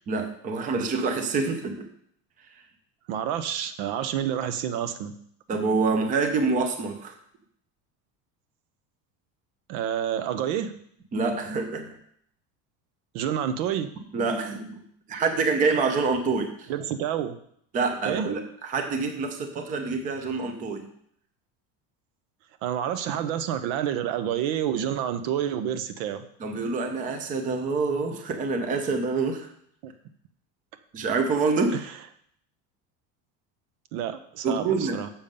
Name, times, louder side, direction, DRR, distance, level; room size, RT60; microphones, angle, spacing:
voice 1, 0.1-1.9 5.5-7.1 11.1-11.9 14.1-14.8 15.1-16.7 17.7-20.9 26.4-29.5 30.9-31.8 34.4-35.0, right 4 dB, 20° right, 5 dB, 0.6 m, -26 dB
voice 2, 3.1-5.1 9.7-10.7 13.1-13.9 16.7-17.4 18.0-18.3 22.6-26.2 29.8-29.9 31.7-31.9 33.9-35.1, right 9 dB, 65° right, 9 dB, 0.8 m, -28 dB
7.2 x 7.0 x 5.3 m, 0.67 s
cardioid pair, 175°, 40 cm